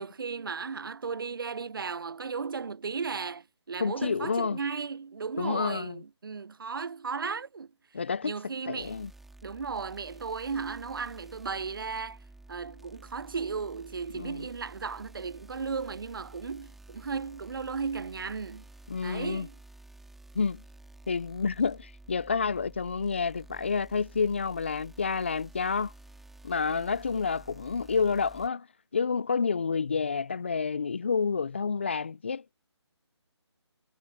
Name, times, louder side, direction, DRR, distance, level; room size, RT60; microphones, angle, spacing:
voice 1, 0.0-7.7 8.2-9.0 9.4-12.2 12.5-18.7 19.0-19.6 26.7-26.9, right 5 dB, 50° right, 0.9 m, -35 dB
voice 2, 3.8-4.6 5.4-6.0 7.9-8.3 8.7-9.1 14.1-14.5 18.9-19.5 20.3-20.6 21.1-25.9 26.4-28.7 28.9-32.5, left 5 dB, 25° left, 0.4 m, -29 dB
sound 1, 8.8-28.5, right 2 dB, ahead, 2.4 m, -52 dB
figure-of-eight pair, 160°, 15 cm